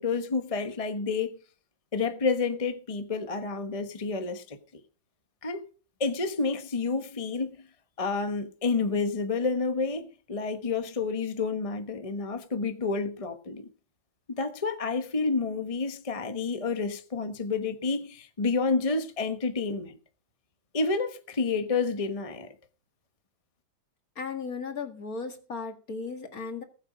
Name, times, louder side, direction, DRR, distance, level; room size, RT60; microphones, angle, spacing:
voice 1, 0.0-1.4 1.9-4.6 5.4-5.6 6.0-7.6 8.0-13.7 14.3-19.9 20.7-22.5, left 4 dB, 25° left, 0.9 m, -29 dB
voice 2, 24.2-26.6, left 5 dB, 50° left, 2.3 m, -36 dB
19.0 x 8.1 x 5.1 m
omnidirectional pair, 2.1 m